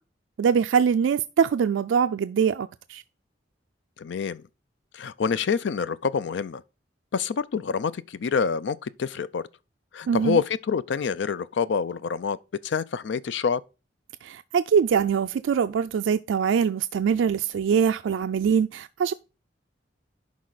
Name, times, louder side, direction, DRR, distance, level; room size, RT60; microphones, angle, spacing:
voice 1, 0.4-3.0 10.1-10.4 14.2-19.1, right 7 dB, 85° right, 0.3 m, -23 dB
voice 2, 4.0-4.4 4.9-6.6 7.1-9.4 9.9-12.4 12.6-13.6, left 6 dB, 70° left, 0.4 m, -27 dB
11.0 x 4.2 x 4.0 m
head